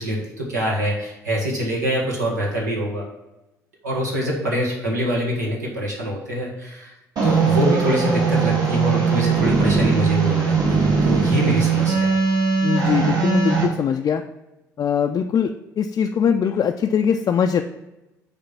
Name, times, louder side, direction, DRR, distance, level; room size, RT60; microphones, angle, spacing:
voice 1, 0.0-3.0 3.8-6.9 7.2-12.2, equal, 80° right, -2 dB, 1.5 m, -24 dB
sound 1, 7.2-13.7, right 5 dB, 45° right, 1.8 m, -19 dB
voice 2, 12.6-14.2 14.8-17.6, left 7 dB, 40° left, 4 dB, 0.4 m, -21 dB
6.6 x 4.3 x 5.6 m, 0.97 s
figure-of-eight pair, 50°, 9 cm